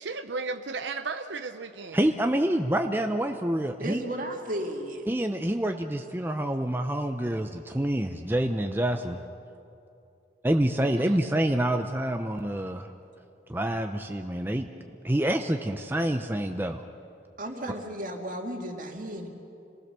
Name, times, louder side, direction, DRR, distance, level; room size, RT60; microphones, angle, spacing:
voice 1, 0.0-2.0 11.0-11.2, right 4 dB, 75° right, 8 dB, 0.7 m, -35 dB
voice 2, 1.9-4.0 5.1-9.2 10.4-12.9 13.5-14.7 15.0-16.8, right 1 dB, 10° right, 5 dB, 0.6 m, -27 dB
voice 3, 3.8-5.1 17.4-19.3, right 1 dB, 45° right, 3 dB, 2.2 m, -34 dB
26.5 x 19.0 x 6.8 m, 2.7 s
head